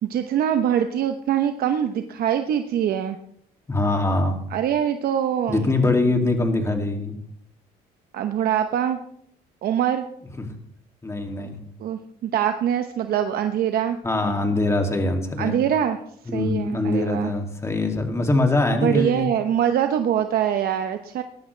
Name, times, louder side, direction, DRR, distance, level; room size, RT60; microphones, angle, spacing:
voice 1, 0.0-3.2 4.5-5.9 8.1-9.0 9.6-10.1 11.4-11.5 11.8-14.0 15.4-16.0 16.3-17.3 18.8-21.2, right 9 dB, 65° right, 7 dB, 0.9 m, -23 dB
voice 2, 3.7-4.4 5.5-7.1 11.0-11.6 14.0-15.6 16.3-19.3, left 2 dB, 15° left, 3 dB, 2.5 m, -23 dB
19.0 x 13.0 x 3.3 m, 0.71 s
cardioid pair, 110°, 17 cm